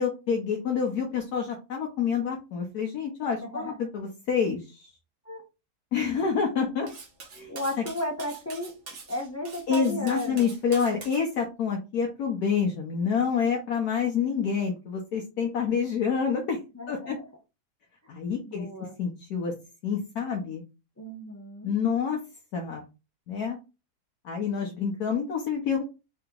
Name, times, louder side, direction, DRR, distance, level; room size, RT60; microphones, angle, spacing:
voice 1, 0.0-4.9 5.9-6.9 7.3-7.5 9.7-16.6 16.9-17.2 18.1-19.5 19.8-20.6 21.6-22.2 22.5-22.9 23.3-23.6 24.2-25.8, left 6 dB, 75° left, 0 dB, 1.3 m, -28 dB
voice 2, 3.4-3.7 5.3-5.4 7.5-8.7 9.1-10.5 16.7-17.1 18.5-18.9 21.0-21.7, left 1 dB, 25° left, 1 dB, 0.3 m, -34 dB
Cutlery silverware, 6.9-11.2, right 4 dB, 50° right, 1.2 m, -44 dB
4.0 x 2.8 x 3.6 m, 0.29 s
omnidirectional pair, 1.7 m